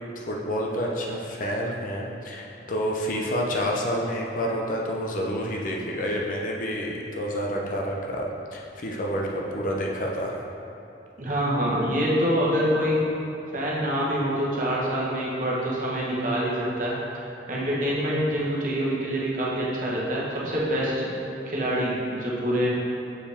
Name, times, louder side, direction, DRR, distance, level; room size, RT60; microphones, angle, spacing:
voice 1, 0.2-10.4, equal, 45° left, -1 dB, 0.5 m, -29 dB
voice 2, 11.2-13.0 13.5-21.1 21.4-22.7, equal, 45° right, -6 dB, 1.2 m, -26 dB
6.8 x 4.8 x 3.5 m, 2.8 s
head